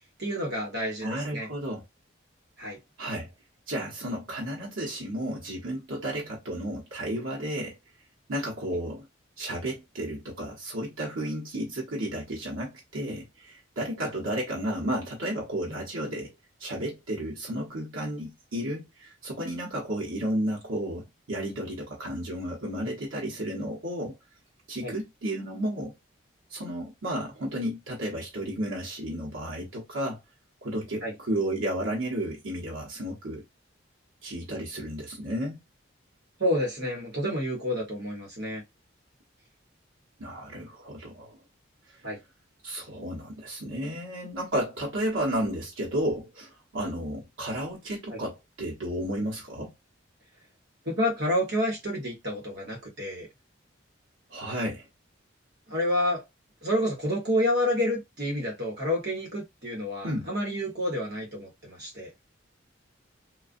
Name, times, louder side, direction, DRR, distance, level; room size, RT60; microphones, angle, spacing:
voice 1, 0.2-1.5 2.6-2.8 24.8-24.9 31.0-31.1 36.4-38.6 42.0-42.2 48.1-48.2 50.8-53.3 55.7-56.2 56.6-62.1, equal, 55° right, 1.2 m, -29 dB
voice 2, 1.0-1.8 3.0-3.3 3.7-7.8 8.3-9.1 9.4-16.3 16.6-24.2 24.7-25.9 26.5-30.2 30.6-33.4 34.2-35.6 40.2-41.4 41.9-42.0 42.6-49.7 54.3-54.9 60.0-60.3, right 1 dB, 90° right, 0.9 m, -32 dB
2.4 x 2.3 x 2.4 m
head